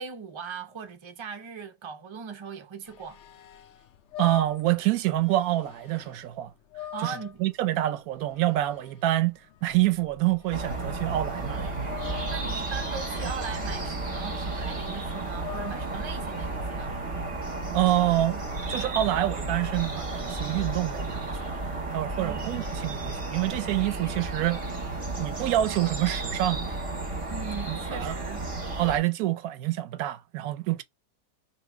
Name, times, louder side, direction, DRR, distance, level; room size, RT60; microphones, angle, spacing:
voice 1, 0.0-3.2 6.9-7.4 12.0-17.0 22.2-22.5 27.3-28.4, right 6 dB, 50° right, 0.3 m, -39 dB
sound 1, 2.9-16.4, left 10 dB, 75° left, 0.6 m, -45 dB
voice 2, 4.2-6.5 7.0-7.1 7.4-11.7 17.7-18.4 18.7-21.6 21.9-24.7 25.2-26.7 27.7-28.2 28.8-30.8, right 14 dB, 70° right, 1.0 m, -27 dB
sound 2, 10.5-29.0, right 3 dB, 25° right, 0.8 m, -33 dB
2.9 x 2.9 x 4.4 m
omnidirectional pair, 1.8 m